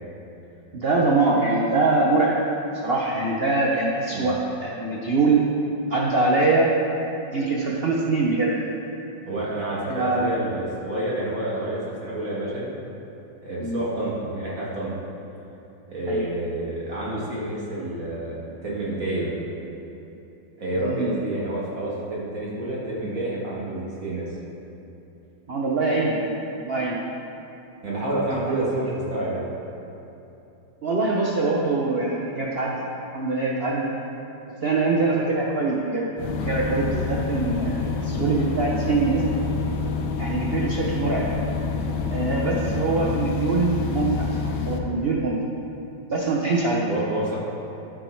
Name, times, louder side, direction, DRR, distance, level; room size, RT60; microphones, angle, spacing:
voice 1, 0.7-2.4 2.8-5.4 5.9-6.7 7.3-8.6 9.9-10.3 13.6-13.8 16.1-16.3 20.8-21.1 25.5-26.3 26.6-27.0 28.3-28.6 30.8-32.7 33.1-33.9 34.6-36.1 36.4-39.2 40.2-41.3 42.1-45.4 46.1-46.9, right 3 dB, 65° right, -3 dB, 0.6 m, -23 dB
voice 2, 9.3-12.7 13.4-14.9 15.9-18.3 18.6-19.3 20.6-24.3 27.8-29.5 42.5-42.8 46.9-47.4, right 1 dB, 45° right, -7 dB, 2.0 m, -28 dB
sound 1, 36.2-44.8, left 4 dB, 70° left, 1.2 m, -27 dB
12.5 x 4.7 x 4.4 m, 2.9 s
omnidirectional pair, 2.1 m